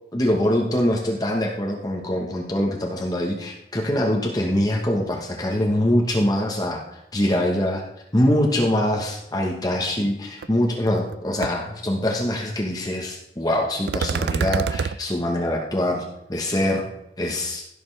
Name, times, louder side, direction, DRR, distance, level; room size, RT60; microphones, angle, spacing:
voice 1, 0.1-6.8 7.1-7.8 8.1-16.8 17.2-17.6, left 1 dB, 20° left, 0 dB, 1.1 m, -23 dB
sound 1, 10.4-10.5 10.9-11.1 11.4-11.5 13.9-14.9, right 5 dB, 70° right, 0.3 m, -25 dB
16.5 x 6.9 x 3.3 m, 0.87 s
head